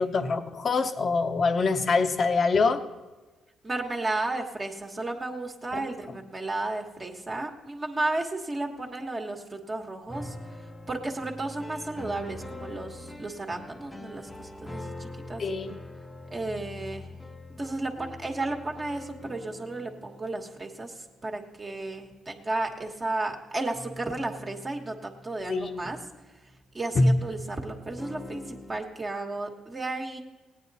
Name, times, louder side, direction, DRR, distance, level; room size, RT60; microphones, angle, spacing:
voice 1, 0.0-2.8 5.7-6.2 15.4-15.7 25.5-25.9 26.9-27.2, left 3 dB, 45° left, 9 dB, 0.9 m, -25 dB
voice 2, 3.6-10.3 10.9-15.4 16.3-17.1 17.6-26.0 26.7-30.2, right 2 dB, 30° right, 1 dB, 1.3 m, -33 dB
sound 1, 10.1-21.4 21.7-22.8 23.7-26.9 27.5-28.8, left 1 dB, 15° left, 0.8 m, -44 dB
17.0 x 9.5 x 4.1 m, 1.2 s
cardioid pair, 90°, 0 cm